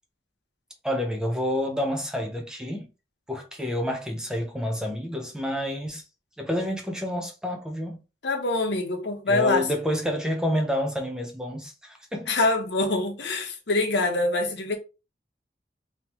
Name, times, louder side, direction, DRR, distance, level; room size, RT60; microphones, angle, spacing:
voice 1, 0.8-2.9 3.3-6.0 6.4-8.0 9.3-12.3, left 1 dB, 5° right, 0.6 m, -29 dB
voice 2, 8.2-9.7 12.3-14.8, left 2 dB, 85° left, 0.9 m, -25 dB
3.5 x 2.9 x 3.0 m
head